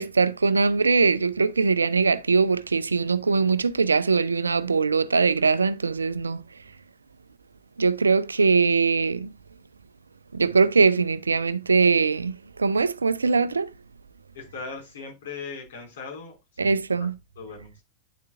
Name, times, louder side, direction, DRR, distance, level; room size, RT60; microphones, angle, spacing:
voice 1, 0.0-6.4 7.8-9.3 10.3-13.7 16.6-17.1, right 4 dB, 75° right, 0.5 m, -22 dB
voice 2, 14.3-17.1 17.4-17.8, left 4 dB, 60° left, 5.1 m, -39 dB
10.0 x 7.3 x 2.4 m
figure-of-eight pair, 90°, 0 cm